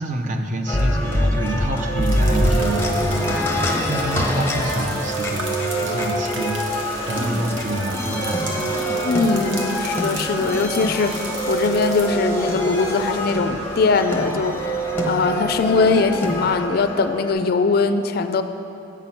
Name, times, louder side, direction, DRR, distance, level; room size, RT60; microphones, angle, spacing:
voice 1, 0.0-9.1, right 1 dB, 40° right, 5 dB, 0.6 m, -27 dB
sound 1, 0.7-17.3, equal, 10° left, 0.7 m, -24 dB
sound 2, 2.0-12.1, right 3 dB, 75° right, 1.1 m, -37 dB
sound 3, 3.9-16.7, equal, 15° right, 1.5 m, -38 dB
voice 2, 9.0-18.4, left 4 dB, 50° left, 9 dB, 0.4 m, -21 dB
8.3 x 6.0 x 5.7 m, 2.9 s
head